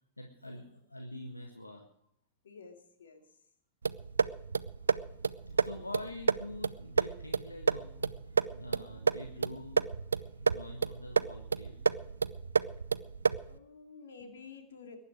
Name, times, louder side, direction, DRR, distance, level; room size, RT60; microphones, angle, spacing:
voice 1, 0.2-1.8 4.8-9.8 10.1-11.8, left 1 dB, 85° left, 3 dB, 1.6 m, -46 dB
voice 2, 2.4-3.2 13.5-15.0, left 5 dB, 65° left, 5 dB, 2.8 m, -51 dB
sound 1, 3.8-13.6, right 5 dB, 75° right, 0.5 m, -31 dB
22.5 x 10.5 x 4.8 m, 0.71 s
figure-of-eight pair, 90°, 0 cm